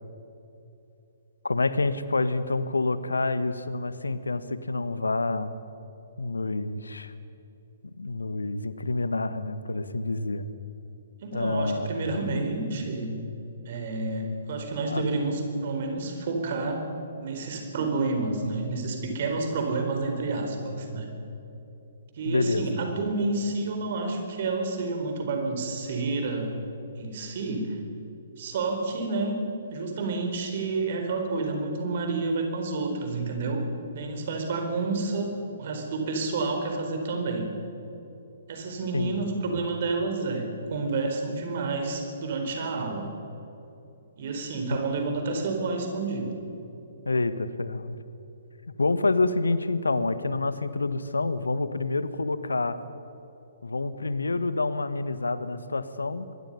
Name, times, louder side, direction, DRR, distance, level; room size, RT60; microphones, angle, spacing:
voice 1, 1.4-5.5 6.2-7.1 7.8-10.5 11.3-12.2 14.9-15.0 22.3-22.7 38.9-39.2 39.5-39.6 47.0-48.0 48.8-52.8 53.6-56.2, left 3 dB, 75° left, 14 dB, 1.2 m, -28 dB
voice 2, 11.2-13.2 13.7-16.9 17.2-21.1 22.2-26.6 27.0-27.8 28.4-29.4 29.7-33.6 33.9-37.5 38.5-43.1 44.2-46.4, right 3 dB, 45° right, 4 dB, 4.4 m, -29 dB
25.0 x 22.0 x 5.6 m, 3.0 s
figure-of-eight pair, 125°, 0 cm